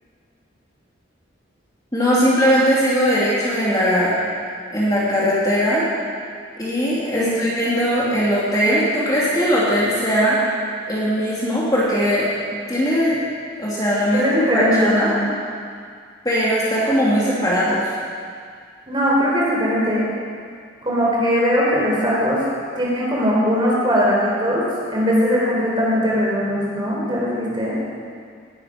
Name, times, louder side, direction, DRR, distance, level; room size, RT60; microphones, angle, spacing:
voice 1, 1.9-4.1 4.7-5.8 6.6-10.4 10.9-13.2 13.6-15.1 16.2-17.9, equal, 20° left, -7 dB, 2.9 m, -19 dB
voice 2, 14.1-15.3 18.9-20.0 20.8-22.4 22.7-27.8, equal, 25° right, -5 dB, 4.0 m, -20 dB
19.0 x 11.5 x 5.3 m, 2.2 s
head